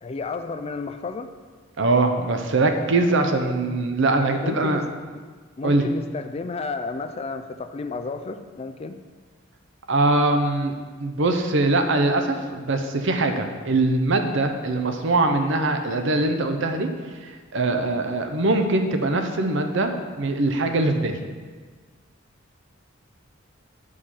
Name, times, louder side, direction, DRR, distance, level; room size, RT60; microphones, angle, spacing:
voice 1, 0.0-1.3 3.6-3.8 4.4-4.9 5.6-9.0, left 4 dB, 30° left, 9 dB, 0.3 m, -32 dB
voice 2, 1.8-4.8 5.6-5.9 9.9-10.7 11.0-16.9 17.2-21.2, right 2 dB, 65° right, 6 dB, 0.7 m, -22 dB
8.4 x 4.8 x 4.4 m, 1.5 s
head